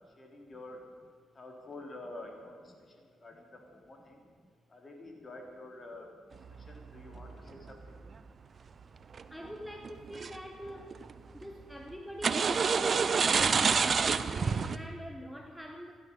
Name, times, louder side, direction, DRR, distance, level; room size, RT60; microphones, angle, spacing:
voice 1, 0.2-0.8 1.3-4.2 4.7-6.1 6.5-8.0, left 2 dB, 30° left, 1 dB, 3.7 m, -48 dB
sound 1, 6.5-8.0 9.1-9.5 9.8-10.4 10.7-11.2 12.2-14.8, right 5 dB, 45° right, 0.7 m, -28 dB
voice 2, 9.3-11.1 11.3-16.0, equal, ahead, 3 dB, 1.2 m, -44 dB
15.5 x 11.5 x 6.9 m, 2.1 s
cardioid pair, 90°, 0 cm